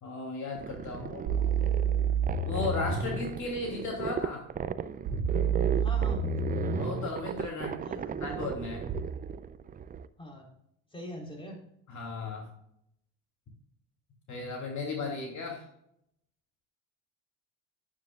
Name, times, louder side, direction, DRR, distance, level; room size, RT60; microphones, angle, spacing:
voice 1, 0.0-1.3 2.5-4.5 6.7-8.9 11.9-12.5 14.3-15.7, left 3 dB, 45° left, 1 dB, 2.8 m, -36 dB
sound 1, 0.6-10.1, right 7 dB, 20° right, 0.4 m, -36 dB
sound 2, 1.3-3.2 5.1-7.1 8.9-9.0, right 6 dB, 70° right, 1.9 m, -29 dB
voice 2, 5.8-6.2 7.8-8.4 10.2-10.5 10.9-11.6, equal, 15° left, 0 dB, 3.6 m, -43 dB
9.8 x 9.4 x 2.3 m, 0.75 s
supercardioid pair, 90°, 40 cm